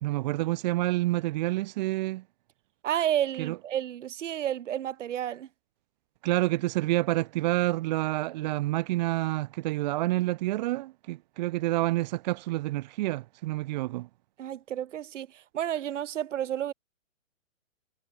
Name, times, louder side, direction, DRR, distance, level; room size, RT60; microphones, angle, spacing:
voice 1, 0.0-2.2 3.4-3.6 6.2-14.1, right 17 dB, 35° right, 0.8 m, -28 dB
voice 2, 2.8-5.5 14.4-15.3 15.5-16.7, right 11 dB, 65° right, 1.9 m, -31 dB
hypercardioid pair, 145°, 40 cm